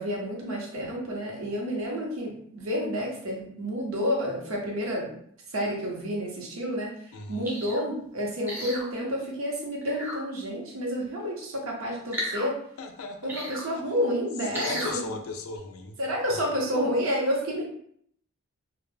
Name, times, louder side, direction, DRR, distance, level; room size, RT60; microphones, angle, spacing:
voice 1, 0.0-5.1 5.5-6.9 7.3-12.5 13.2-14.7 14.9-15.2 16.0-17.7, equal, 75° right, -1 dB, 0.8 m, -30 dB
voice 2, 7.1-7.5 12.1-12.2 12.8-13.6 14.5-16.0 16.3-16.4, left 3 dB, 75° left, 5 dB, 0.4 m, -37 dB
sound 1, 7.4-7.8 8.5-8.9 9.8-10.2 12.1-12.5 13.3-13.6 14.5-15.0 15.6-15.7, equal, 10° right, 0.4 m, -33 dB
2.1 x 2.1 x 3.2 m, 0.66 s
head